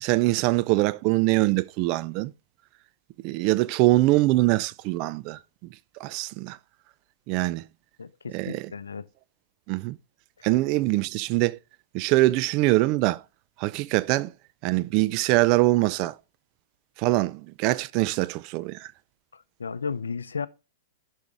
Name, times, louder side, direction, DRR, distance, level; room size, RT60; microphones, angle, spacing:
voice 1, 0.0-2.3 3.2-5.4 6.0-6.6 7.3-7.6 8.3-8.7 9.7-10.0 10.4-11.6 11.9-13.2 13.6-14.3 14.6-16.1 17.0-18.9, right 19 dB, 45° right, 0.4 m, -23 dB
voice 2, 8.0-9.1 19.6-20.5, left 5 dB, 90° left, 0.5 m, -33 dB
11.5 x 6.3 x 3.3 m
hypercardioid pair, 110°, 0 cm